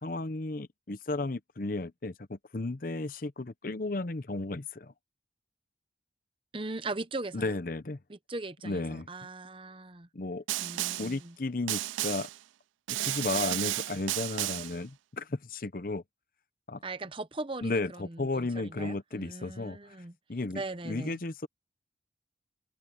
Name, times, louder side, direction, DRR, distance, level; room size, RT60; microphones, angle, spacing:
voice 1, 0.0-4.9 7.3-8.0 8.6-9.1 10.1-10.4 10.7-12.3 12.9-16.0 16.7-16.8 17.6-20.0 20.3-21.5, left 2 dB, 50° left, 0.8 m, -34 dB
voice 2, 6.5-7.5 8.1-10.1 10.6-11.4 16.8-20.1 20.5-21.2, right 2 dB, 30° right, 0.9 m, -39 dB
Snare drum, 10.5-11.2 11.7-12.4 12.9-14.8, right 16 dB, 85° right, 0.3 m, -33 dB
head